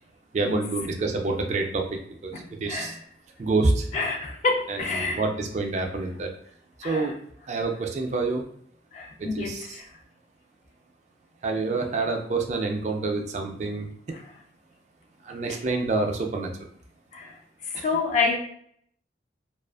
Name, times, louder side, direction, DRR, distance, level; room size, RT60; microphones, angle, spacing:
voice 1, 0.3-2.3 2.6-3.0 3.4-4.0 4.7-6.3 6.8-7.2 7.5-8.5 9.2-9.8 11.4-14.2 15.2-16.5 17.7-17.9, right 3 dB, 40° right, 2 dB, 0.3 m, -27 dB
voice 2, 2.3-3.0 3.9-5.2 6.8-7.1 8.9-9.8 15.5-15.6 17.1-17.3 17.7-18.4, left 4 dB, 40° left, 2 dB, 0.3 m, -28 dB
2.4 x 2.4 x 2.3 m, 0.65 s
head